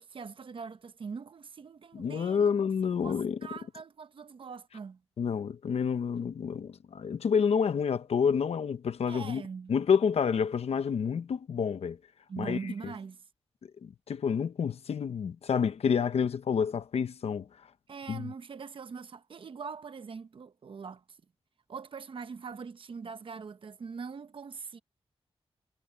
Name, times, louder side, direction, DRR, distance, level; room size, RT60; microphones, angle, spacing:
voice 1, 0.0-2.5 2.9-5.0 9.1-9.8 12.3-13.2 17.9-21.0 21.7-24.8, right 5 dB, 60° right, 0.9 m, -42 dB
voice 2, 1.9-3.4 5.2-9.4 9.7-12.0 12.4-12.6 13.8-17.5 18.1-18.3, left 6 dB, 85° left, 0.9 m, -28 dB
wide cardioid pair, 140°, 10 cm